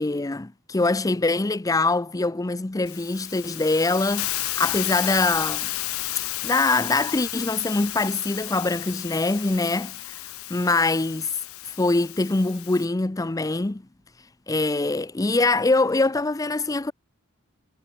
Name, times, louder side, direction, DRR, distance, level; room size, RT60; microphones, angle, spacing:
voice 1, 0.0-5.7 6.4-10.2 10.5-11.3 11.6-13.8 14.5-16.9, left 2 dB, 15° left, 0.5 m, -23 dB
Hiss, 2.9-12.9, left 16 dB, 90° left, 0.9 m, -32 dB
head